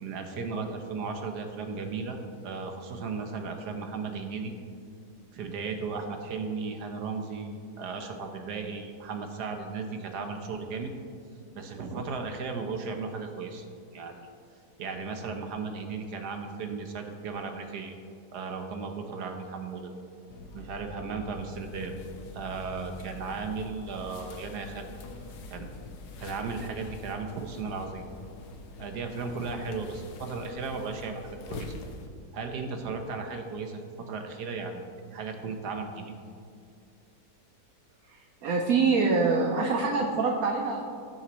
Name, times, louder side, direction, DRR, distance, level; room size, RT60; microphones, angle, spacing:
voice 1, 0.0-2.2 2.4-4.5 5.3-10.9 11.5-13.6 13.9-14.3 14.8-17.9 18.3-19.9 20.5-21.9 22.3-24.9 25.5-25.7 26.2-28.0 28.8-31.7 32.3-36.1, right 4 dB, 90° right, 5 dB, 1.6 m, -35 dB
sound 1, 20.3-32.1, left 3 dB, 90° left, 1.4 m, -44 dB
voice 2, 38.1-40.8, right 4 dB, 70° right, 1 dB, 1.2 m, -25 dB
19.0 x 7.1 x 3.1 m, 2.3 s
omnidirectional pair, 1.7 m